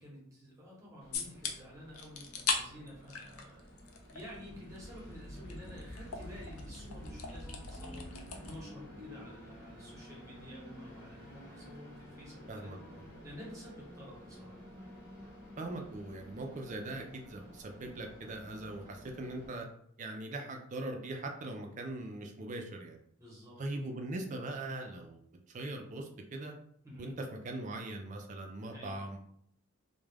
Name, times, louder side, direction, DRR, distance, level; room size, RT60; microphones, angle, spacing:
voice 1, 0.0-3.6 4.1-12.7 13.2-14.6 23.2-23.6 26.8-27.1 28.7-28.9, equal, 15° right, -5 dB, 0.8 m, -51 dB
Train, 1.0-19.5, left 1 dB, 45° left, 0.9 m, -51 dB
sound 1, 1.1-1.5 1.9-2.6 2.9-4.2 4.5-8.6, left 5 dB, 85° left, 0.4 m, -39 dB
voice 2, 12.5-13.0 15.6-19.7 20.0-23.0 23.6-25.2 25.5-26.5 27.0-29.2, right 2 dB, 35° right, 2 dB, 0.4 m, -41 dB
2.3 x 2.1 x 3.3 m, 0.68 s
head